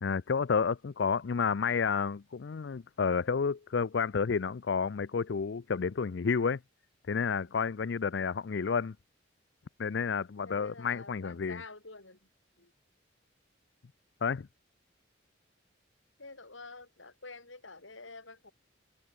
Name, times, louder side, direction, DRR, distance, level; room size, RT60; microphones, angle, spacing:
voice 1, 0.0-6.6 7.1-8.9 9.8-11.6 14.2-14.5, left 5 dB, 65° left, 0.5 m, -30 dB
voice 2, 7.3-7.6 10.4-12.3 12.6-12.7 16.2-18.5, left 3 dB, 85° left, 6.1 m, -49 dB
head